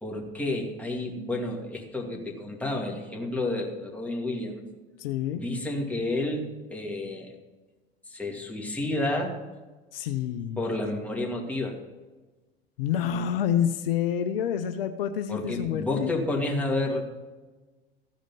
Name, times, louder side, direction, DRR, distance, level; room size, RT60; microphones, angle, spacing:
voice 1, 0.0-4.6 5.3-7.4 8.1-9.3 10.6-11.8 15.3-17.0, left 2 dB, 5° left, -2 dB, 2.3 m, -30 dB
voice 2, 5.0-5.4 9.9-10.6 12.8-16.1, left 9 dB, 70° left, 8 dB, 0.7 m, -28 dB
14.5 x 5.1 x 5.5 m, 1.2 s
hypercardioid pair, 80°, 30 cm